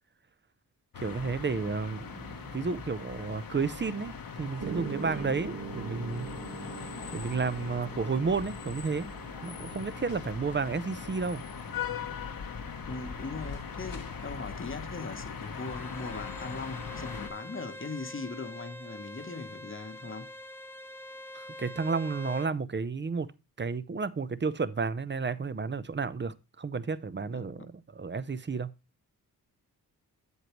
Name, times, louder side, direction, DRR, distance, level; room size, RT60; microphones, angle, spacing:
sound 1, 0.9-17.3, left 6 dB, 60° left, 1.2 m, -40 dB
voice 1, 1.0-6.3 7.1-9.1 9.4-11.4 21.3-23.3 23.6-28.7, right 4 dB, 30° right, 0.6 m, -32 dB
Piano, 4.6-12.7, right 6 dB, 90° right, 2.1 m, -43 dB
voice 2, 12.9-20.3 27.3-27.7, left 3 dB, 30° left, 1.0 m, -40 dB
Bowed string instrument, 15.6-22.5, left 1 dB, 5° left, 0.8 m, -45 dB
8.1 x 7.8 x 3.0 m
cardioid pair, 55°, 39 cm